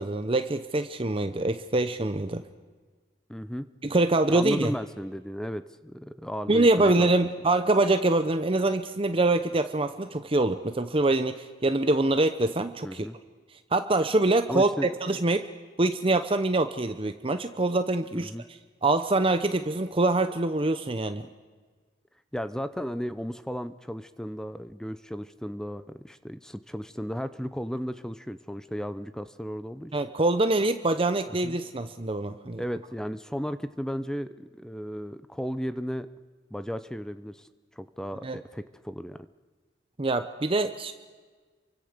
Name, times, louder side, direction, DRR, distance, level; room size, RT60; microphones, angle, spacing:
voice 1, 0.0-2.4 3.8-4.7 6.5-13.1 13.7-14.7 15.0-15.5 15.8-18.3 18.8-21.3 29.9-32.6 38.2-38.4 40.0-40.9, right 2 dB, 30° right, 9 dB, 0.8 m, -24 dB
voice 2, 3.3-3.7 4.3-7.1 12.8-13.2 14.5-14.9 18.1-18.5 22.3-29.9 31.4-31.6 32.6-36.1 36.5-37.5 37.8-39.3, equal, 5° left, 12 dB, 0.7 m, -34 dB
28.5 x 24.0 x 6.7 m, 1.4 s
head